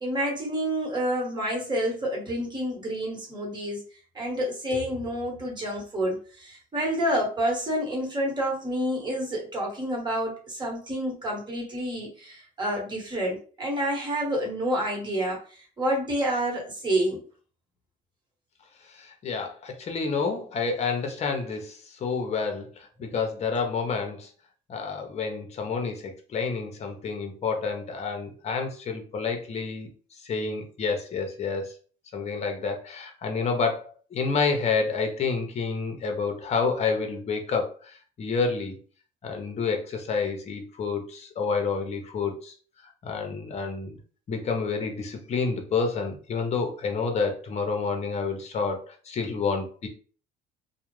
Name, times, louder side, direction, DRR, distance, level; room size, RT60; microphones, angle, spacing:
voice 1, 0.0-3.8 4.1-17.2, equal, 25° right, -1 dB, 1.1 m, -28 dB
voice 2, 18.9-24.3 24.7-29.9 30.2-31.7 32.1-38.8 39.2-42.5 43.0-44.0 44.3-49.9, left 4 dB, 40° left, 4 dB, 0.6 m, -29 dB
2.4 x 2.1 x 3.0 m, 0.41 s
cardioid pair, 110°, 17 cm